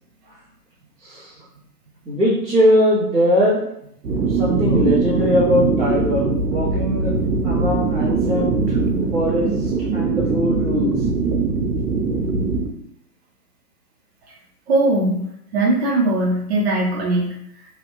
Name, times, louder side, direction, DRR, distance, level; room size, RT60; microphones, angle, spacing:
voice 1, 2.0-3.6 4.1-7.1 7.4-8.8 9.1-9.5 9.9-11.0, left 1 dB, 5° right, -19 dB, 0.6 m, -20 dB
sound 1, 4.0-12.7, right 4 dB, 80° right, 0.8 m, -21 dB
voice 2, 14.7-15.3 15.5-17.4, right 2 dB, 40° right, -3 dB, 0.9 m, -19 dB
3.1 x 2.4 x 3.0 m, 0.72 s
hypercardioid pair, 150°, 49 cm